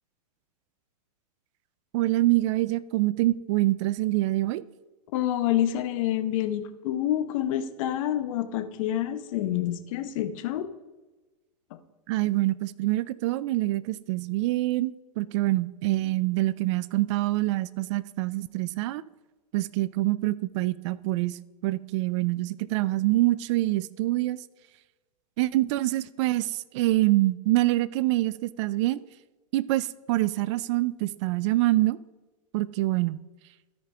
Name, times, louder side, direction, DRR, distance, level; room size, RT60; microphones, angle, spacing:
voice 1, 1.9-4.6 12.1-19.0 19.5-24.4 25.4-29.0 29.5-32.0 32.5-33.2, right 17 dB, 45° right, 19 dB, 0.4 m, -25 dB
voice 2, 5.1-10.7 11.7-11.8, left 12 dB, 55° left, 9 dB, 0.9 m, -28 dB
13.0 x 5.2 x 3.3 m, 1.1 s
hypercardioid pair, 105°, 21 cm